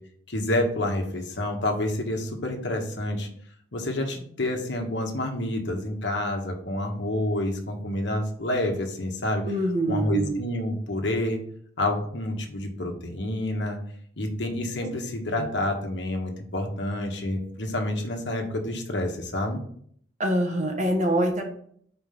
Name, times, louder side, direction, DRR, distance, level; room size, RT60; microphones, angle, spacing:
voice 1, 0.3-3.3 3.7-9.4 9.9-11.4 11.8-13.8 14.2-19.6, left 1 dB, 65° left, 3 dB, 1.2 m, -28 dB
voice 2, 9.4-10.3 14.8-14.9 15.4-15.5 20.2-21.4, right 1 dB, 40° right, 3 dB, 1.1 m, -25 dB
5.1 x 4.5 x 5.8 m, 0.63 s
head